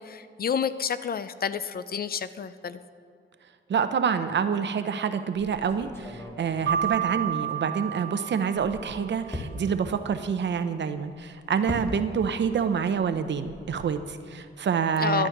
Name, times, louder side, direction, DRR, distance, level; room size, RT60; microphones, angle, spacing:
voice 1, 0.0-2.8 15.0-15.3, left 7 dB, 50° left, 13 dB, 0.5 m, -29 dB
voice 2, 3.7-15.3, right 6 dB, 60° right, 10 dB, 0.7 m, -27 dB
sound 1, 5.3-8.0 8.4-12.5 12.7-14.0, left 1 dB, 10° left, 1.4 m, -41 dB
Keyboard (musical), 6.7-9.2, right 9 dB, 85° right, 1.4 m, -30 dB
11.5 x 9.8 x 5.9 m, 2.4 s
wide cardioid pair, 125°, 21 cm